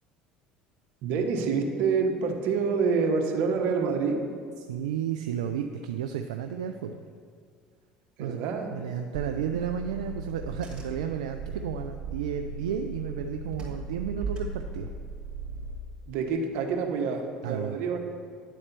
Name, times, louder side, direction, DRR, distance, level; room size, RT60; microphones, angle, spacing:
voice 1, 1.0-4.2 8.2-8.7 16.1-18.0, right 5 dB, 65° right, 3 dB, 1.1 m, -27 dB
voice 2, 4.6-7.0 8.2-8.4 8.7-14.9 17.4-17.8, right 8 dB, 85° right, 6 dB, 0.4 m, -32 dB
Car / Engine, 9.1-15.8, right 3 dB, 25° right, 2.6 m, -37 dB
10.0 x 4.2 x 6.7 m, 2.1 s
hypercardioid pair, 75°, 4 cm